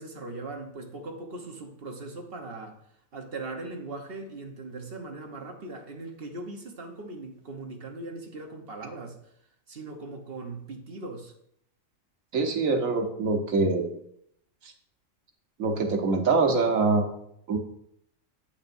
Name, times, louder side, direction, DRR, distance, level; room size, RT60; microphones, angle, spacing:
voice 1, 0.0-2.8 3.1-9.2 9.7-11.3, right 2 dB, 50° right, 2 dB, 1.3 m, -39 dB
voice 2, 12.3-13.9 15.6-17.1 17.5-17.6, right 3 dB, 85° right, 4 dB, 1.5 m, -24 dB
8.7 x 8.4 x 2.6 m, 0.72 s
omnidirectional pair, 1.4 m